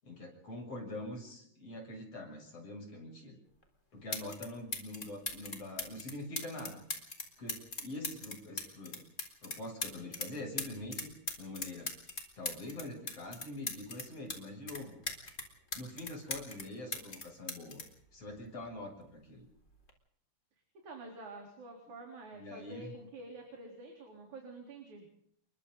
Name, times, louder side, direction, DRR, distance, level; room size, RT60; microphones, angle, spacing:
voice 1, 0.0-3.4 3.9-6.8 7.4-9.0 9.4-11.1 11.4-11.9 12.4-15.0 15.8-17.8 18.1-19.5 22.3-22.9, left 1 dB, 55° left, 2 dB, 8.3 m, -44 dB
sound 1, 3.6-3.7 4.1-4.5 4.7-10.3 10.6-14.4 14.7-16.7 16.9-18.8 19.7-19.9, left 2 dB, 25° left, 4.1 m, -39 dB
voice 2, 20.8-25.1, right 2 dB, 85° right, 1 dB, 5.2 m, -48 dB
30.0 x 23.0 x 4.0 m, 0.68 s
omnidirectional pair, 3.3 m